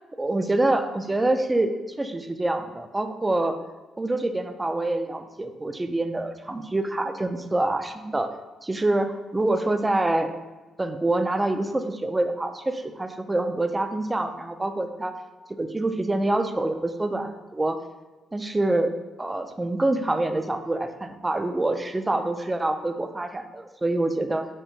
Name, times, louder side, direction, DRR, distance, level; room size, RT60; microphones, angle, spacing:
voice 1, 0.2-3.6 4.0-8.3 8.6-10.3 10.8-15.1 15.6-17.8 18.3-18.9 19.2-24.5, right 2 dB, 15° right, 8 dB, 0.4 m, -26 dB
4.5 x 2.4 x 4.3 m, 1.2 s
cardioid pair, 90°, 0 cm